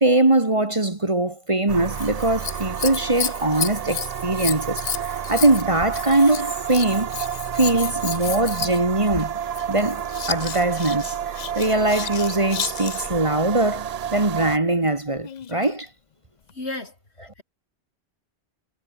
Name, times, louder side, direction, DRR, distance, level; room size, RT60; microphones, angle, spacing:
voice 1, 0.0-4.8 5.3-7.1 7.5-9.4 9.7-10.0 10.3-11.2 11.6-15.9, right 2 dB, 30° right, 1.7 m, -21 dB
sound 1, 1.7-14.6, right 8 dB, 50° right, 0.5 m, -30 dB
Scissors, 1.8-13.2 15.2-15.8 16.5-16.6, left 8 dB, 45° left, 0.7 m, -32 dB
voice 2, 16.5-17.4, left 2 dB, 75° left, 4.6 m, -35 dB
omnidirectional pair, 1.1 m